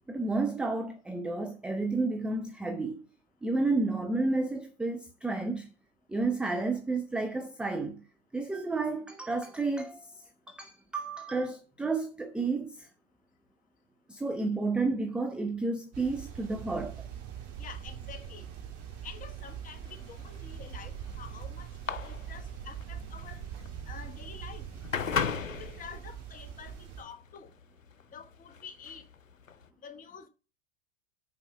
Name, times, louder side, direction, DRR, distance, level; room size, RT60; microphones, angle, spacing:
voice 1, 0.1-3.1 3.4-5.7 6.1-8.0 8.3-10.1 10.5-12.9 14.1-17.1, right 3 dB, 5° right, 0.5 m, -31 dB
sound 1, 15.9-27.0, right 9 dB, 40° right, 2.6 m, -42 dB
voice 2, 17.6-18.5 19.0-23.4 23.9-24.7 25.5-27.5 28.1-29.0 29.8-30.3, left 7 dB, 20° left, 1.1 m, -48 dB
sound 2, 19.8-29.7, left 6 dB, 90° left, 0.8 m, -37 dB
6.8 x 4.9 x 6.8 m
hypercardioid pair, 100°, 38 cm